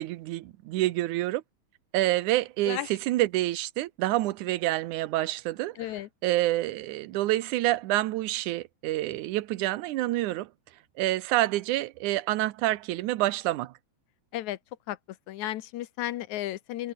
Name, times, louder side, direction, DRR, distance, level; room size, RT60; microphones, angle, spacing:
voice 1, 0.0-1.4 1.9-5.9 6.2-10.5 11.0-13.7, right 16 dB, 90° right, 2.3 m, -27 dB
voice 2, 5.8-6.1 14.3-14.6 14.9-15.0 15.3-16.9, left 14 dB, 80° left, 2.4 m, -33 dB
omnidirectional pair, 3.4 m